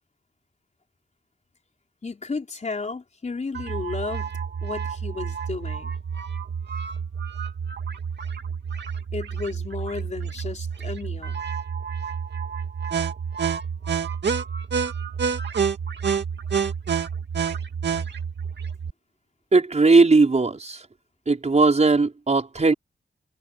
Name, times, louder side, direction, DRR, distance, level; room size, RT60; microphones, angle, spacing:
voice 1, 2.0-4.3 4.6-6.0 9.1-11.4, left 4 dB, 40° left, 4.2 m, -33 dB
sound 1, 3.5-18.9, right 6 dB, 85° right, 2.2 m, -29 dB
voice 2, 19.5-20.9 21.3-22.7, right 3 dB, 40° right, 5.2 m, -18 dB
wide cardioid pair, 110°, 18 cm